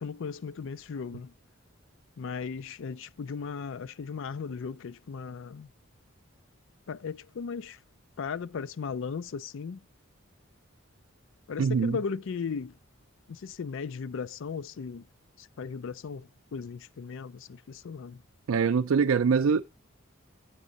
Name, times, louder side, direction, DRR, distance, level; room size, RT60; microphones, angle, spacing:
voice 1, 0.0-1.3 2.2-5.7 6.9-7.8 8.2-9.8 11.5-12.8 13.3-15.1 15.4-18.2, left 5 dB, 65° left, 0.4 m, -37 dB
voice 2, 11.6-12.0 18.5-19.6, right 6 dB, 80° right, 0.4 m, -23 dB
7.9 x 7.3 x 3.9 m
head